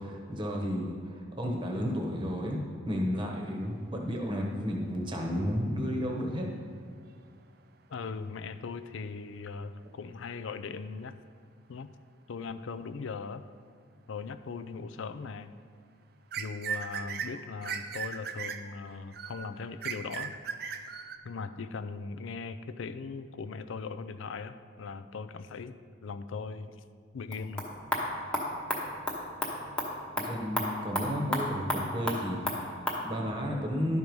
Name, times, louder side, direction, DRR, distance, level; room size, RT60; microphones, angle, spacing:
voice 1, 0.0-2.6 2.9-6.5 30.2-34.0, equal, 25° right, 0 dB, 1.0 m, -32 dB
voice 2, 7.9-11.2 11.7-11.9 12.3-13.4 14.1-15.6 16.4-20.3 21.2-25.8 26.0-26.8 27.1-27.6, left 4 dB, 80° left, 11 dB, 0.4 m, -39 dB
sound 1, 16.3-21.2, right 6 dB, 50° right, 0.4 m, -37 dB
sound 2, 27.2-33.0, equal, 5° left, 1.0 m, -34 dB
11.5 x 4.7 x 5.3 m, 2.2 s
head